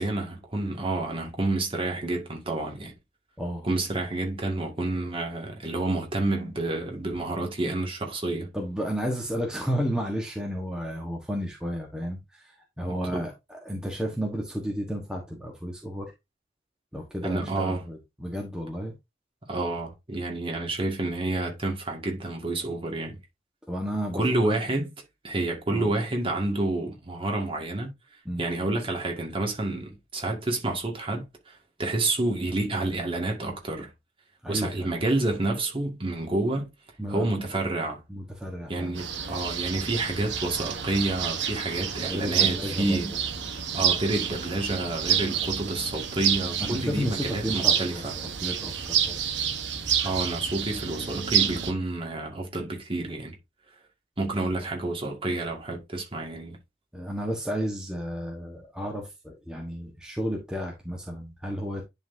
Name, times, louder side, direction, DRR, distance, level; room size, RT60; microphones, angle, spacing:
voice 1, 0.0-2.9 3.6-8.5 13.1-13.2 17.2-17.8 19.5-23.2 24.1-24.9 25.2-27.9 28.4-33.9 34.5-36.7 37.1-38.0 38.7-43.1 43.7-48.1 50.0-53.4 54.2-56.6, right 2 dB, 30° right, 1.9 m, -29 dB
voice 2, 3.4-3.7 8.5-16.1 16.9-19.0 23.7-24.2 25.7-25.9 28.2-28.4 34.4-34.9 37.0-37.4 38.1-39.0 42.1-43.0 46.6-49.2 56.9-61.8, equal, 5° right, 1.2 m, -32 dB
sound 1, 39.0-51.7, right 8 dB, 85° right, 1.0 m, -29 dB
10.5 x 4.0 x 2.6 m
head